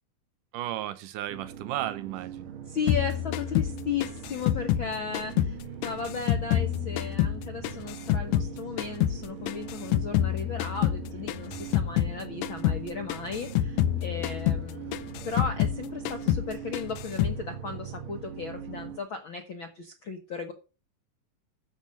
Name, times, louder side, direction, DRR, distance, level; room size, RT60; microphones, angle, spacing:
voice 1, 0.5-2.5, right 13 dB, 80° right, 2.1 m, -34 dB
sound 1, 1.3-19.0, right 8 dB, 60° right, 1.3 m, -41 dB
voice 2, 2.7-15.0 15.2-20.5, left 5 dB, 65° left, 1.2 m, -36 dB
sound 2, 2.9-5.6 5.8-8.5 8.8-12.2 12.4-12.8 13.1-15.8 16.1-16.5 16.7-17.4, left 12 dB, 90° left, 1.6 m, -27 dB
13.5 x 5.7 x 6.5 m
omnidirectional pair, 4.1 m